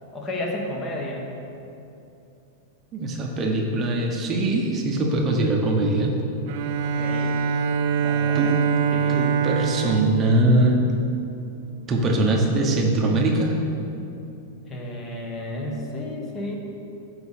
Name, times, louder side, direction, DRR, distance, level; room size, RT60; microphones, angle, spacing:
voice 1, 0.1-1.3 6.8-7.5 8.0-8.5 8.9-9.2 14.6-16.5, left 1 dB, 20° left, -1 dB, 1.3 m, -32 dB
voice 2, 2.9-6.2 8.3-8.5 9.1-10.8 11.9-13.6, right 2 dB, 20° right, 1 dB, 1.0 m, -22 dB
Bowed string instrument, 6.5-11.3, right 6 dB, 50° right, 0.5 m, -24 dB
8.0 x 5.3 x 6.5 m, 2.8 s
supercardioid pair, 160°, 0 cm